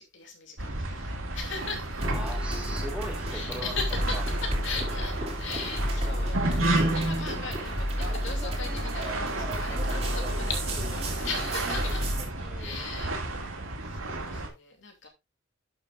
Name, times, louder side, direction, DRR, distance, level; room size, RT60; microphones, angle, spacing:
voice 1, 0.0-2.1 3.3-15.1, left 4 dB, 60° left, 2.8 m, -39 dB
sound 1, 0.6-14.5, right 2 dB, 80° right, 2.5 m, -33 dB
sound 2, 2.0-12.2, equal, 30° right, 2.8 m, -31 dB
voice 2, 2.1-3.8 4.1-4.2 12.4-12.8 15.0-15.1, equal, 5° right, 1.7 m, -39 dB
11.0 x 7.6 x 2.5 m
head